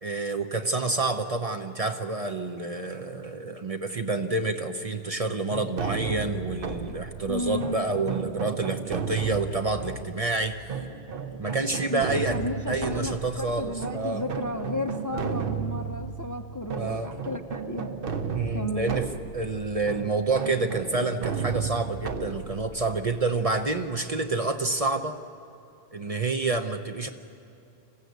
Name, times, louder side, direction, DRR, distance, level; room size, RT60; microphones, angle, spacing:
voice 1, 0.0-10.6 11.4-12.4 12.7-14.2 16.7-17.1 18.3-25.2 25.9-27.1, right 3 dB, 35° right, 6 dB, 0.8 m, -28 dB
sound 1, 5.5-24.2, right 5 dB, 60° right, 1.1 m, -34 dB
voice 2, 7.3-7.9 11.9-17.9 18.5-19.0, left 2 dB, 20° left, 7 dB, 0.7 m, -33 dB
26.5 x 14.5 x 8.1 m, 2.7 s
omnidirectional pair, 1.1 m